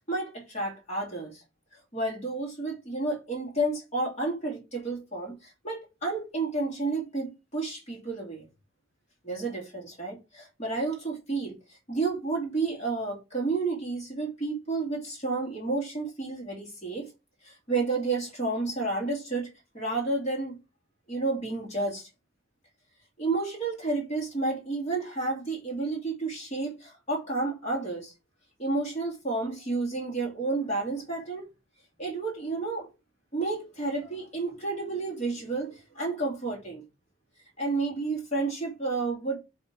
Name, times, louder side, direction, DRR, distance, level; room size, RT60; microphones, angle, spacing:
voice 1, 0.1-1.4 1.9-8.5 9.2-17.1 17.4-20.5 21.1-22.1 23.2-28.1 28.6-31.5 32.0-32.9 33.3-36.8 37.6-39.4, right 3 dB, 35° left, 2.6 m, -31 dB
6.6 x 3.7 x 4.7 m
head